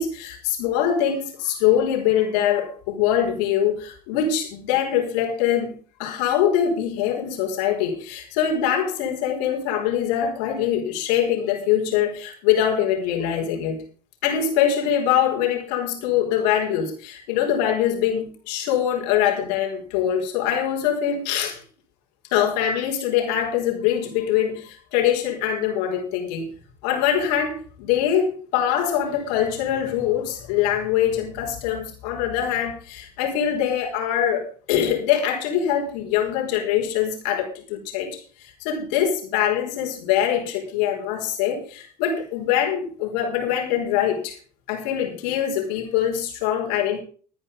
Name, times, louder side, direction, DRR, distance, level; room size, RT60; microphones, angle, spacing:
voice 1, 0.0-5.7 6.0-13.8 14.2-21.6 22.3-26.5 26.8-44.4 44.7-47.0, left 9 dB, 70° left, 0 dB, 4.9 m, -23 dB
13.0 x 9.9 x 5.5 m, 0.42 s
hypercardioid pair, 75°, 21 cm